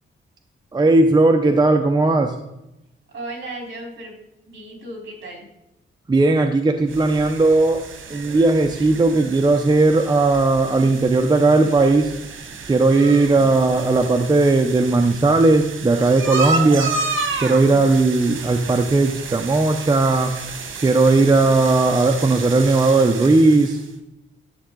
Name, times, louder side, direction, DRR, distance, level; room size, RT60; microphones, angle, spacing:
voice 1, 0.7-2.4 6.1-12.1 12.7-16.9 17.4-20.4 20.8-23.8, right 3 dB, 20° right, 5 dB, 0.7 m, -17 dB
voice 2, 3.1-4.1 4.5-5.5 13.1-13.6, right 1 dB, 60° right, 0 dB, 4.1 m, -36 dB
sound 1, 6.9-23.9, right 4 dB, 80° right, 1.4 m, -31 dB
11.5 x 7.2 x 3.8 m, 0.89 s
wide cardioid pair, 130°, 20 cm